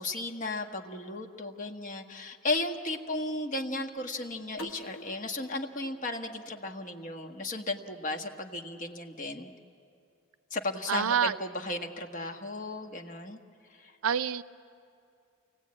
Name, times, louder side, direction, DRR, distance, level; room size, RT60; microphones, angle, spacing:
voice 1, 0.0-9.5 10.5-13.4 13.7-14.0, left 2 dB, 40° left, 3 dB, 1.3 m, -35 dB
sound 1, 4.6-7.4, equal, 75° left, 1.0 m, -48 dB
voice 2, 10.9-11.4 14.0-14.4, right 8 dB, 85° right, 15 dB, 0.6 m, -27 dB
28.5 x 18.5 x 8.6 m, 2.5 s
head